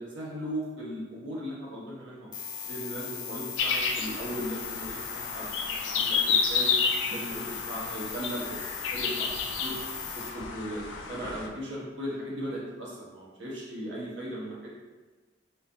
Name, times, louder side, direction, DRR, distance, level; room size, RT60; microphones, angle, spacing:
voice 1, 0.0-2.3 2.6-6.7 7.1-8.6 8.9-9.3 9.6-9.8 10.1-14.7, equal, 75° right, -6 dB, 1.1 m, -37 dB
sound 1, 2.3-10.3, left 7 dB, 25° left, 0.5 m, -39 dB
sound 2, 3.6-11.5, left 5 dB, 75° left, 0.4 m, -31 dB
4.1 x 2.5 x 2.7 m, 1.3 s
head